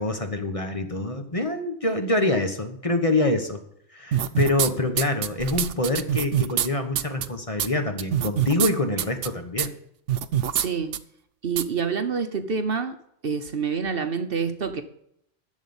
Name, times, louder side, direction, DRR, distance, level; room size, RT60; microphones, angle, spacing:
voice 1, 0.0-3.6 3.9-9.7, left 2 dB, 30° left, 5 dB, 1.2 m, -25 dB
sound 1, 4.1-4.7 5.0-6.7 7.0-7.3 7.6-7.7 8.0-8.7 9.0-9.3 9.6-9.7 10.1-10.7 10.9-11.0 11.6-11.7, right 10 dB, 80° right, 1.0 m, -24 dB
voice 2, 10.5-11.0 11.4-13.0 13.2-14.8, right 5 dB, 55° right, 9 dB, 1.0 m, -27 dB
12.0 x 7.3 x 7.1 m, 0.73 s
omnidirectional pair, 1.2 m